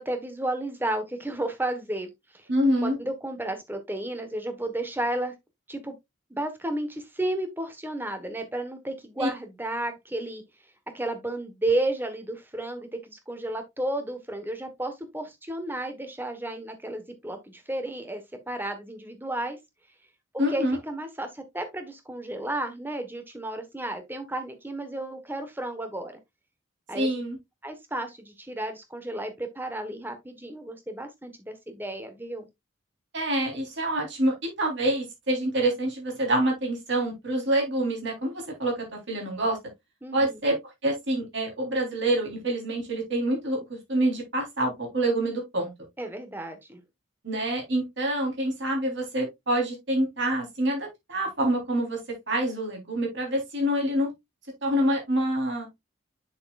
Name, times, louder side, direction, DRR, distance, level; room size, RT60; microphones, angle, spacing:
voice 1, 0.0-2.5 2.8-5.3 5.7-5.9 6.3-10.4 10.9-19.6 20.3-26.1 26.9-27.2 27.6-32.5 40.0-40.4 46.0-46.8, right 1 dB, 10° right, 1.2 m, -32 dB
voice 2, 2.5-3.0 9.2-9.3 20.4-20.8 26.9-27.4 33.1-39.6 40.1-40.6 40.8-45.7 47.2-52.0 52.3-54.1 54.6-55.7, right 1 dB, 55° right, 3.6 m, -26 dB
7.9 x 6.7 x 2.4 m
head